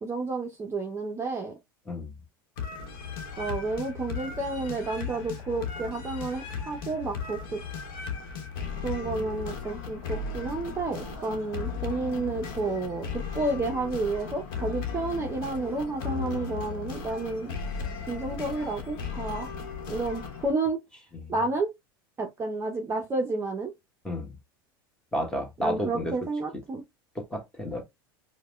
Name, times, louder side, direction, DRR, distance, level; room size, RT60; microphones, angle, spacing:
voice 1, 0.0-1.5 3.4-7.6 8.8-17.5 18.1-19.5 19.9-20.8 21.3-21.7 22.2-23.7 25.6-26.8, right 3 dB, 20° right, 0.6 m, -31 dB
sound 1, 2.6-20.5, left 6 dB, 70° left, 1.0 m, -36 dB
voice 2, 24.0-24.4 25.1-26.1 27.1-27.8, equal, 5° left, 1.4 m, -32 dB
4.6 x 2.2 x 2.2 m
hypercardioid pair, 95°, 12 cm